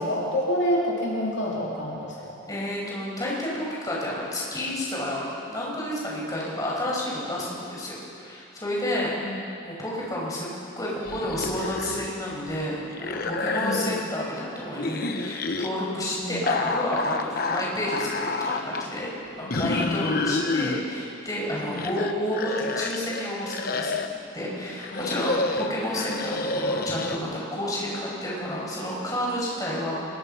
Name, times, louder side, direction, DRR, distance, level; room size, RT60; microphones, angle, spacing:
voice 1, 0.0-2.4 9.1-9.4 13.6-13.9 16.1-16.5 19.4-19.8 21.6-21.9 24.9-25.3, equal, 65° left, -4 dB, 2.9 m, -29 dB
voice 2, 2.5-10.5 10.8-19.1 19.3-24.0 24.3-30.1, left 1 dB, 20° left, -5 dB, 5.9 m, -30 dB
sound 1, 11.1-12.2 12.5-14.1 14.8-15.7 16.5-18.9 19.5-20.8 21.5-24.2 24.8-27.2, left 3 dB, 45° left, 1.0 m, -29 dB
24.5 x 22.0 x 5.7 m, 2.5 s
head